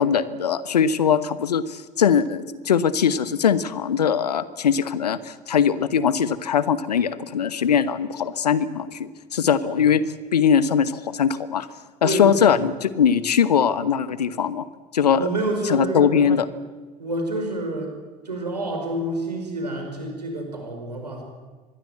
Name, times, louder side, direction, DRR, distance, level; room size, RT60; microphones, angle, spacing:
voice 1, 0.0-10.0 10.3-11.7 12.0-14.6 14.9-15.3 15.7-16.5, left 7 dB, 75° left, 16 dB, 1.2 m, -21 dB
voice 2, 12.0-12.6 15.1-16.3 17.0-17.9 18.3-21.2, right 2 dB, 85° right, 3 dB, 5.3 m, -28 dB
25.5 x 21.0 x 8.0 m, 1.4 s
figure-of-eight pair, 65°, 21 cm